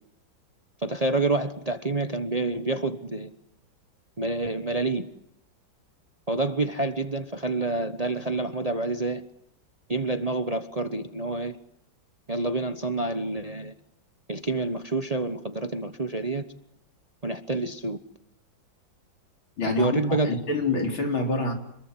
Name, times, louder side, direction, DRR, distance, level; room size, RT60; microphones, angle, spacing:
voice 1, 0.8-3.3 4.2-5.1 6.3-9.2 9.9-11.6 12.3-13.7 14.3-16.4 17.2-18.0 19.7-20.3, right 2 dB, 25° right, 1.0 m, -28 dB
voice 2, 19.6-21.5, left 2 dB, 85° left, 5.0 m, -27 dB
26.5 x 22.0 x 9.8 m
omnidirectional pair, 2.1 m